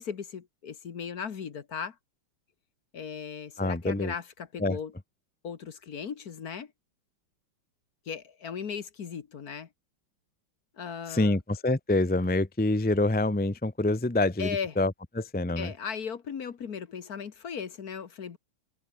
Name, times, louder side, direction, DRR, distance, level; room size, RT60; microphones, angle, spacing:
voice 1, 0.0-2.0 2.9-4.9 5.4-6.7 8.1-9.7 10.8-11.4 14.4-14.8 15.6-18.4, left 7 dB, 50° left, 1.7 m, -37 dB
voice 2, 3.6-4.1 4.6-4.8 11.1-15.7, left 2 dB, 10° left, 0.6 m, -26 dB
omnidirectional pair, 2.2 m